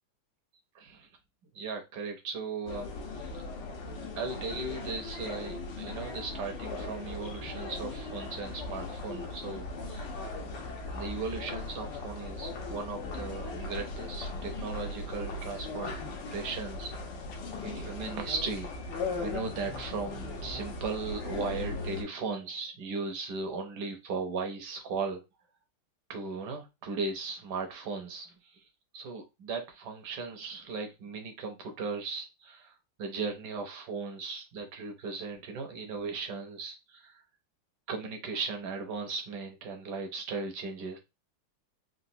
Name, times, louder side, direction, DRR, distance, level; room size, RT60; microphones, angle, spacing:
voice 1, 1.5-2.9 3.2-3.5 4.2-10.1 10.9-15.9 16.3-17.0 17.6-18.7 19.2-25.2 26.1-28.3 28.9-32.7 33.0-37.2 37.9-41.0, right 4 dB, 70° right, 4 dB, 1.3 m, -37 dB
sound 1, 2.7-22.0, left 3 dB, 75° left, 1.4 m, -38 dB
4.0 x 2.4 x 2.6 m, 0.24 s
omnidirectional pair, 2.1 m